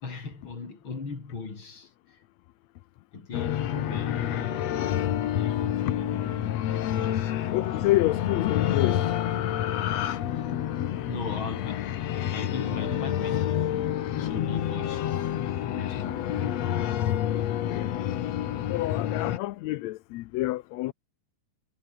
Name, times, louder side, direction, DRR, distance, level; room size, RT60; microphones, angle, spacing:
voice 1, 0.0-2.2 3.1-4.7 5.3-7.3 11.1-11.9 12.3-13.5 14.1-15.1 15.7-16.6, left 4 dB, 35° left, 4.7 m, -38 dB
sound 1, 3.3-19.4, left 11 dB, 60° left, 2.2 m, -28 dB
voice 2, 7.5-9.0 14.2-14.5 16.0-16.2 17.5-17.9 18.7-20.9, left 17 dB, 75° left, 1.6 m, -28 dB
omnidirectional pair, 3.8 m